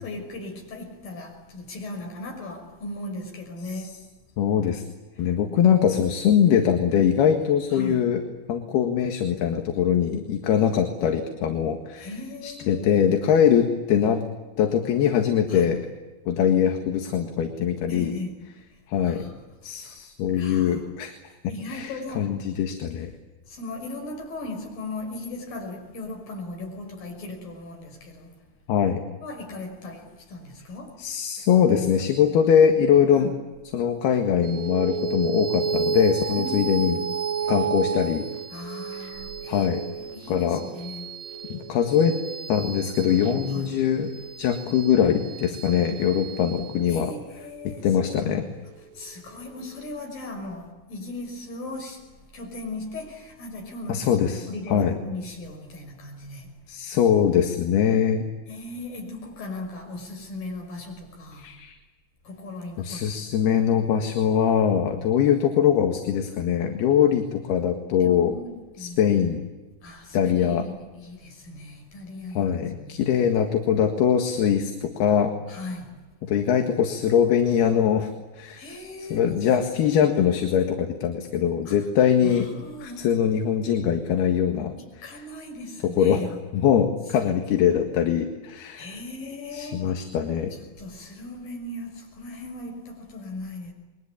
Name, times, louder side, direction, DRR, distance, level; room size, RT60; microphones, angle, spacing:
voice 1, 0.0-4.0 5.2-5.3 7.7-8.0 12.0-12.9 15.5-15.7 17.9-18.4 18.7-19.4 19.7-20.0 20.3-20.8 21.5-22.3 23.4-28.4 29.2-31.0 33.1-33.3 36.3-37.0 37.4-37.5 38.5-41.1 43.5-43.7 45.6-45.8 46.9-48.5 48.9-52.1 52.3-56.5 58.5-61.5 62.2-63.4 68.0-69.0 69.8-73.0 75.5-75.9 78.6-79.4 81.7-81.8 82.2-83.1 84.8-86.3 88.8-90.0 90.8-93.7, left 2 dB, 55° left, 7.5 m, -38 dB
voice 2, 4.4-4.8 5.2-8.2 8.5-12.1 12.4-14.2 14.6-15.8 16.3-18.1 18.9-19.3 19.6-21.2 21.7-23.1 28.7-29.0 31.0-33.3 33.7-37.0 37.5-38.3 39.0-39.8 40.3-40.6 41.5-42.2 42.5-44.1 44.4-47.1 47.7-48.5 53.9-54.9 56.7-58.3 61.4-61.8 62.8-68.4 68.8-69.4 70.1-70.6 72.3-75.3 76.2-78.1 78.4-78.7 79.1-82.5 82.8-84.7 85.1-85.2 85.8-89.0 89.5-90.5, left 8 dB, 70° left, 3.7 m, -22 dB
sound 1, 34.4-49.2, right 6 dB, 55° right, 2.5 m, -32 dB
29.0 x 22.5 x 8.6 m
omnidirectional pair, 4.8 m